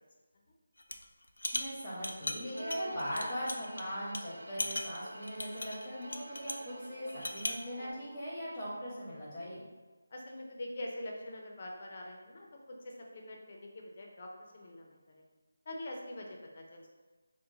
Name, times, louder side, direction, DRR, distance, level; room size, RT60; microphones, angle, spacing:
sound 1, 0.8-1.0 1.4-3.8 4.1-4.2 4.6-6.7 7.1-7.6, left 1 dB, 85° left, 0.4 m, -38 dB
voice 1, 1.5-9.6, equal, 15° left, -8 dB, 0.8 m, -40 dB
Bowed string instrument, 2.5-8.2, right 2 dB, 80° right, 0.6 m, -46 dB
voice 2, 10.1-15.2 15.7-16.9, left 1 dB, 40° left, 0 dB, 0.6 m, -44 dB
2.9 x 2.1 x 3.9 m, 1.3 s
figure-of-eight pair, 165°, 0 cm